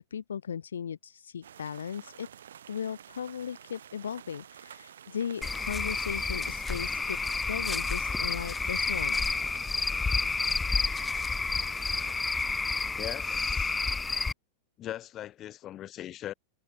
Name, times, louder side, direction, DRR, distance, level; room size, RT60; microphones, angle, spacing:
voice 1, 0.0-2.3 2.7-7.2 7.5-9.3, left 7 dB, 70° left, 0.7 m, -37 dB
sound 1, 1.4-12.1, right 9 dB, 65° right, 2.5 m, -51 dB
Cricket / Frog, 5.4-14.3, left 4 dB, 10° left, 0.5 m, -30 dB
voice 2, 12.9-13.8 14.8-16.3, left 12 dB, 30° left, 1.2 m, -40 dB
figure-of-eight pair, 90°, 0 cm